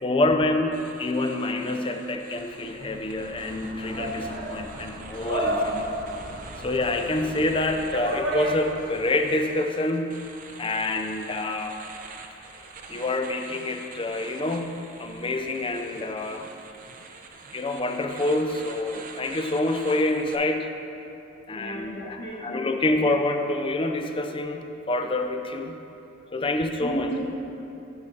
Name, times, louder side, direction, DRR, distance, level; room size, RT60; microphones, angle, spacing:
voice 1, 0.0-5.9 6.6-10.3 10.6-11.8 12.9-16.5 17.5-20.7 21.5-25.8 26.3-27.1, left 2 dB, 25° left, 6 dB, 0.4 m, -27 dB
sound 1, 0.7-20.4, right 4 dB, 40° right, 0.6 m, -45 dB
sound 2, 2.6-9.0, equal, 60° right, 1.3 m, -32 dB
voice 2, 21.5-22.7 26.8-27.2, right 1 dB, 55° left, -4 dB, 1.7 m, -33 dB
12.0 x 5.0 x 4.2 m, 2.9 s
head